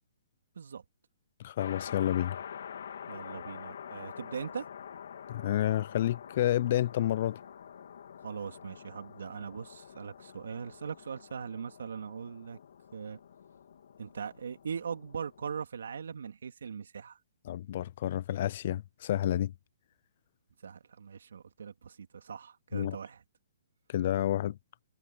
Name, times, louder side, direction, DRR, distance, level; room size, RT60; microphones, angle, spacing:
voice 1, 1.4-2.4 5.3-7.4 17.5-19.5 22.7-23.0 23.9-24.6, left 12 dB, 35° left, 0.3 m, -30 dB
sound 1, 1.6-15.5, left 8 dB, 60° left, 2.8 m, -47 dB
voice 2, 3.1-4.7 8.2-12.6 12.9-13.2 14.0-17.2 20.6-23.2, right 6 dB, 70° right, 3.3 m, -40 dB
hypercardioid pair, 175°, 0 cm